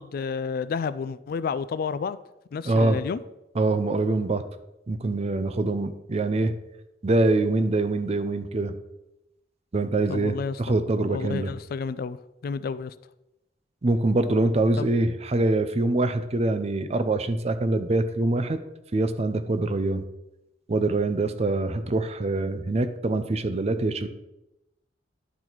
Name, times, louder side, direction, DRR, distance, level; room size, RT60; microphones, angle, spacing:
voice 1, 0.0-2.2 2.5-3.2 10.1-10.6 11.1-12.2 12.4-12.9 14.8-14.9, left 5 dB, 55° left, 16 dB, 0.3 m, -30 dB
voice 2, 2.7-3.0 3.5-4.4 4.9-6.5 7.0-8.7 9.7-11.5 13.8-18.6 18.9-20.0 20.7-24.1, right 2 dB, 35° right, 10 dB, 0.5 m, -24 dB
10.5 x 4.1 x 4.5 m, 0.92 s
head